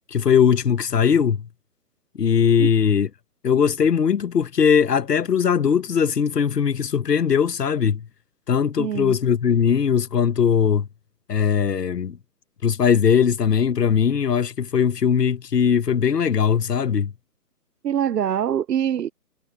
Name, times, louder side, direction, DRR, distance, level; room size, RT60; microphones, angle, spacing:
voice 1, 0.1-1.5 2.1-3.1 3.4-8.1 8.5-10.9 11.3-12.2 12.6-17.1, left 7 dB, 85° left, 1.2 m, -20 dB
voice 2, 8.8-9.2 17.8-19.1, right 9 dB, 85° right, 0.7 m, -24 dB
hypercardioid pair, 155°, 47 cm